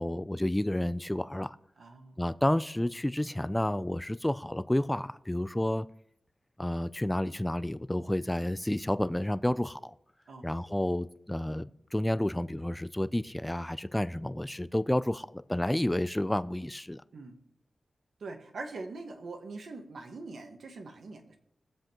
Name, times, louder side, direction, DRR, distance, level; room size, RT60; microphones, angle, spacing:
voice 1, 0.0-1.6 2.2-5.9 6.6-9.9 10.4-17.0, left 1 dB, 10° left, 0.4 m, -30 dB
voice 2, 1.8-2.2 10.3-10.5 17.1-17.4 18.2-21.4, right 3 dB, 75° right, 1.5 m, -43 dB
20.5 x 7.6 x 3.0 m
wide cardioid pair, 95°, 0 cm